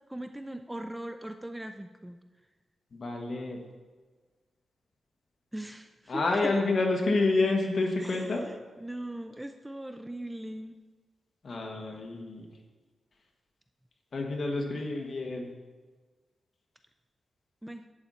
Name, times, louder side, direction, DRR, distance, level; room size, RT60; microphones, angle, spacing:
voice 1, 0.1-2.2 5.5-6.6 8.0-8.2 8.8-10.7 17.6-17.9, right 1 dB, 5° right, 7 dB, 0.4 m, -39 dB
voice 2, 2.9-3.6 6.1-8.5 11.4-12.5 14.1-15.5, left 3 dB, 45° left, 1 dB, 1.6 m, -28 dB
11.0 x 8.9 x 4.2 m, 1.3 s
wide cardioid pair, 145°, 0 cm